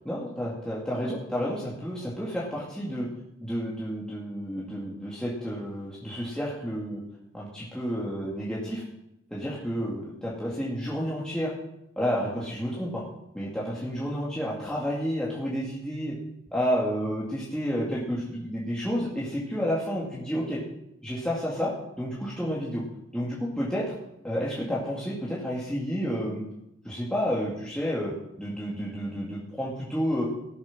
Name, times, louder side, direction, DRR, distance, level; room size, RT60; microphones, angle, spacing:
voice 1, 0.1-3.1 3.4-7.0 7.3-8.8 9.3-11.5 12.0-13.0 13.3-16.1 16.5-20.6 21.0-22.8 23.1-24.0 24.2-26.4 26.8-30.2, equal, 5° left, -7 dB, 2.3 m, -30 dB
16.5 x 7.6 x 6.1 m, 0.85 s
head